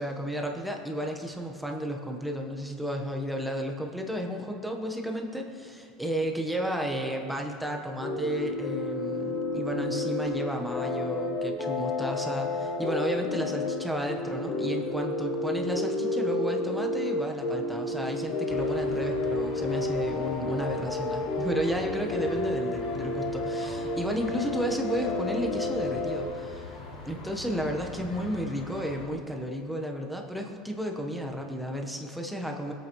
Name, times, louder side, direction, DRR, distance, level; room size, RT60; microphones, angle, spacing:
voice 1, 0.0-26.8 27.0-32.7, equal, ahead, 2 dB, 1.1 m, -32 dB
sound 1, 8.0-26.3, left 2 dB, 50° left, 1.3 m, -31 dB
sound 2, 18.5-29.1, left 3 dB, 75° left, 3.5 m, -43 dB
21.0 x 8.8 x 3.1 m, 2.4 s
cardioid pair, 140°, 0 cm